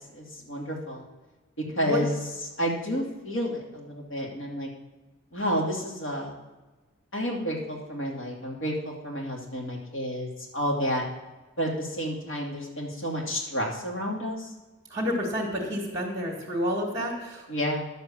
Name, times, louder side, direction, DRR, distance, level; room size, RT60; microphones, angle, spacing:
voice 1, 0.1-1.0 1.7-2.1 2.6-4.7 5.3-6.3 7.1-11.1 11.6-14.5 17.5-17.8, equal, 65° left, -1 dB, 2.6 m, -30 dB
voice 2, 14.9-17.4, left 1 dB, 15° right, -3 dB, 2.0 m, -29 dB
11.0 x 7.6 x 7.1 m, 1.2 s
head